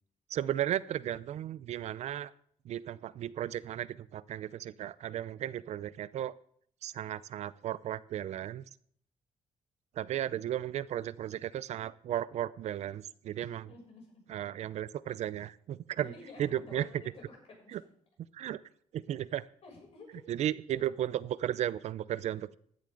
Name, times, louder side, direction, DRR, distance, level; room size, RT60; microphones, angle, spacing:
voice 1, 0.3-2.3 2.6-6.3 6.8-8.6 9.9-13.7 14.3-16.1 16.4-17.0 17.7-17.8 18.3-18.6 18.9-19.5 20.3-22.6, right 11 dB, 70° right, 18 dB, 0.5 m, -35 dB
voice 2, 13.4-14.3 16.0-17.9 19.6-20.2 20.7-20.9, left 3 dB, 55° left, -2 dB, 7.0 m, -52 dB
15.5 x 10.5 x 3.9 m, 0.63 s
cardioid pair, 120°, 12 cm